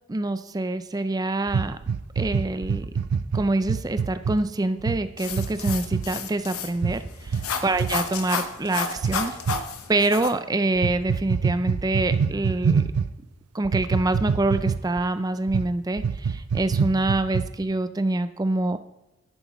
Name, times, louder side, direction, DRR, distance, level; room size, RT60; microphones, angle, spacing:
voice 1, 0.1-1.8 2.2-2.9 3.3-9.4 9.9-12.8 13.5-18.8, right 2 dB, 15° right, 11 dB, 0.4 m, -26 dB
sound 1, 1.5-4.4 4.8-5.0 5.3-6.1 6.8-7.0 7.3-7.5 7.7-7.9 9.0-9.6 10.8-13.1 13.6-15.0 15.5-15.7 16.0-17.6, right 6 dB, 85° right, 0.5 m, -25 dB
sound 2, 5.2-10.3, left 5 dB, 80° left, 0.9 m, -32 dB
11.0 x 9.1 x 3.0 m, 0.99 s
head